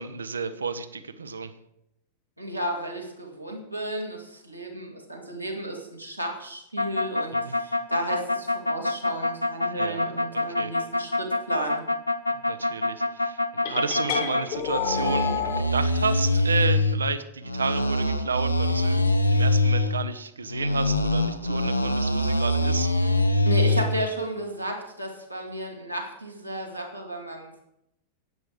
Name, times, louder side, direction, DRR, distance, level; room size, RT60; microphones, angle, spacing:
voice 1, 0.0-1.5 7.5-7.6 9.6-10.7 12.5-19.0 19.3-23.2, right 5 dB, 75° right, 12 dB, 0.7 m, -31 dB
voice 2, 2.4-11.8 23.5-27.6, right 1 dB, 90° right, -1 dB, 2.3 m, -33 dB
sound 1, 6.8-14.4 14.8-17.0 17.4-20.0 20.5-23.9, left 2 dB, 85° left, 0.7 m, -24 dB
sound 2, 13.6-15.6, left 8 dB, 50° left, 1.6 m, -29 dB
10.5 x 8.8 x 4.9 m, 0.81 s
figure-of-eight pair, 90°, 0 cm